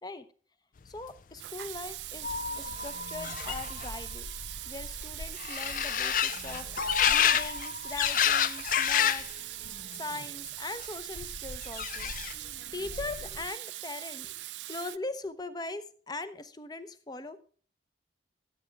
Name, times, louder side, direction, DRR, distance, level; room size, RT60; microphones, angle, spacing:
voice 1, 0.8-4.3 4.7-9.3 9.9-12.2 12.4-17.5, left 3 dB, 20° left, 11 dB, 0.7 m, -41 dB
Water tap faucet / Sink (filling or washing), 1.4-15.0, right 17 dB, 75° right, 0.4 m, -41 dB
sound 1, 1.8-1.9 2.0-9.3 9.6-10.2 11.2-12.5 12.8-13.4, left 9 dB, 45° left, 0.4 m, -30 dB
sound 2, 2.2-5.1 6.8-9.6, left 3 dB, 65° left, 1.5 m, -40 dB
13.5 x 8.2 x 3.4 m, 0.43 s
head